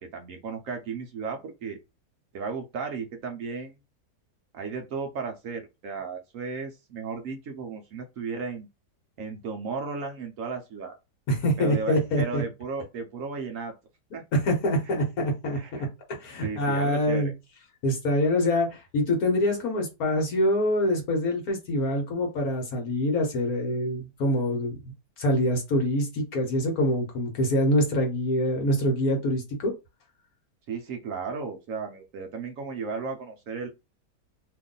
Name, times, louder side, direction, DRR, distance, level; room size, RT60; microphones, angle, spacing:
voice 1, 0.1-1.8 2.3-3.8 4.5-8.7 9.2-10.9 11.6-13.7 14.1-14.2 15.5-15.9 16.4-17.3 30.7-33.7, right 5 dB, 65° right, 0.9 m, -34 dB
voice 2, 11.3-12.4 14.3-17.3 17.8-24.8 25.2-29.7, left 1 dB, 65° left, 1.3 m, -25 dB
2.9 x 2.5 x 3.7 m
omnidirectional pair, 1.8 m